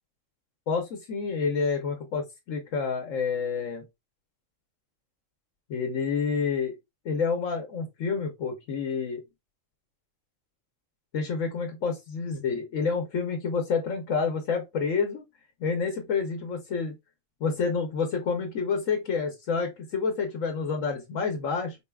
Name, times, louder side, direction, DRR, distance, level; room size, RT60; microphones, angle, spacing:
voice 1, 0.7-3.8 5.7-6.8 7.0-9.2 11.1-15.2 15.6-16.9 17.4-21.8, left 5 dB, 90° left, 1.2 m, -28 dB
4.6 x 2.3 x 3.3 m
omnidirectional pair, 1.3 m